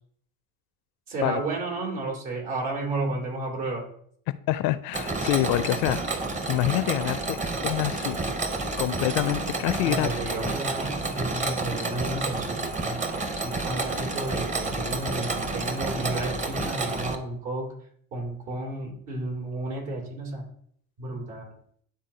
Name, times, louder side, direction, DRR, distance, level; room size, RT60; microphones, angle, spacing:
voice 1, 1.1-3.9 9.8-13.0 13.3-17.7 18.1-20.4 21.0-21.5, right 2 dB, 70° right, 0 dB, 2.8 m, -32 dB
voice 2, 4.3-6.2 6.5-8.3 8.8-10.1, left 15 dB, 60° left, 15 dB, 0.5 m, -27 dB
Mechanisms, 4.9-17.1, right 3 dB, 20° right, 0.7 m, -30 dB
10.5 x 3.6 x 2.8 m, 0.64 s
hypercardioid pair, 80°, 40 cm